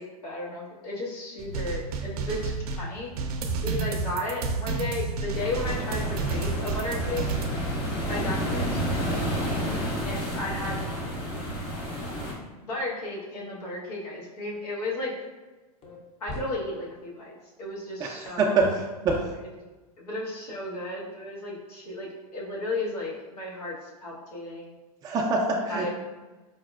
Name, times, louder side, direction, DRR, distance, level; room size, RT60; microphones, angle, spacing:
voice 1, 0.0-3.1 3.6-7.2 8.1-9.2 10.0-10.8 12.6-15.1 16.2-18.5 20.0-24.7 25.7-25.9, left 2 dB, 85° left, -4 dB, 1.1 m, -34 dB
sound 1, 1.4-7.5, right 4 dB, 75° right, 0.5 m, -31 dB
sound 2, 5.3-12.3, equal, 45° left, 1.2 m, -30 dB
sound 3, 15.8-16.0 16.3-16.5 18.6-18.8 19.1-19.2, right 1 dB, 30° left, 0.6 m, -36 dB
voice 2, 18.0-19.2 25.0-25.9, right 3 dB, 20° right, -1 dB, 0.3 m, -25 dB
4.8 x 2.0 x 2.3 m, 1.2 s
hypercardioid pair, 115°, 20 cm